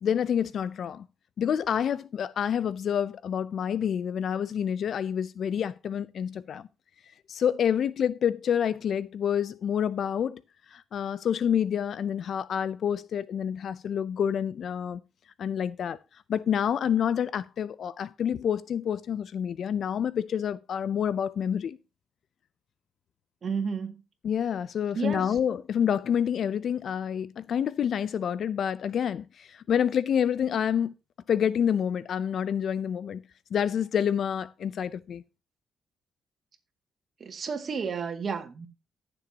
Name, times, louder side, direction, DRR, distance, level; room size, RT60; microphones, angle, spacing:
voice 1, 0.0-1.0 1.4-6.6 7.3-10.4 10.7-15.0 15.4-16.0 16.3-21.8 24.2-30.9 31.3-33.2 33.5-35.2, left 8 dB, 60° left, 0.4 m, -28 dB
voice 2, 23.4-24.0 24.9-25.4 37.2-38.7, right 5 dB, 45° right, 2.0 m, -32 dB
15.0 x 6.9 x 2.8 m
cardioid pair, 90°, 0 cm